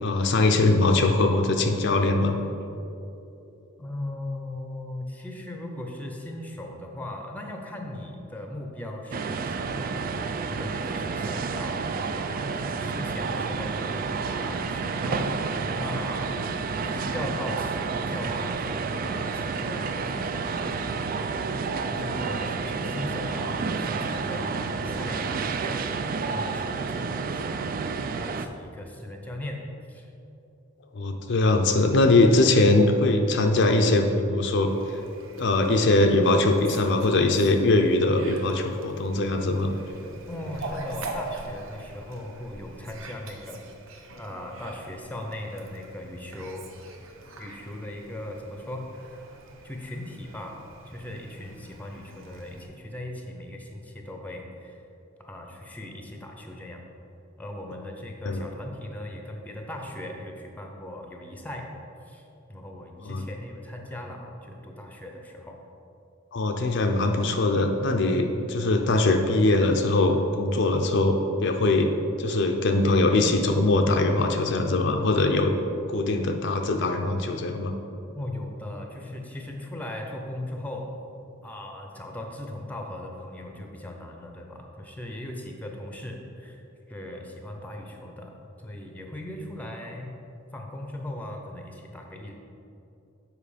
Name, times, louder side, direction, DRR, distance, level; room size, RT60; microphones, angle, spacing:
voice 1, 0.0-2.4 30.9-34.7 35.4-39.7 58.3-58.4 63.0-63.2 66.3-71.9 72.2-75.5 75.9-77.7, left 2 dB, 60° left, 4 dB, 0.5 m, -22 dB
voice 2, 3.8-16.3 16.8-21.3 21.9-25.9 26.3-27.6 28.1-30.1 40.3-43.6 44.1-46.6 47.4-48.9 49.6-54.8 55.2-56.8 57.4-61.7 62.1-65.6 78.1-80.9 81.4-86.6 86.9-88.3 88.6-90.2 90.5-92.3, left 1 dB, 10° left, 2 dB, 0.7 m, -38 dB
sound 1, 9.1-28.5, right 4 dB, 45° right, 0.3 m, -30 dB
Fowl, 34.7-52.7, right 2 dB, 85° right, 0.8 m, -43 dB
7.4 x 5.0 x 5.0 m, 2.8 s
head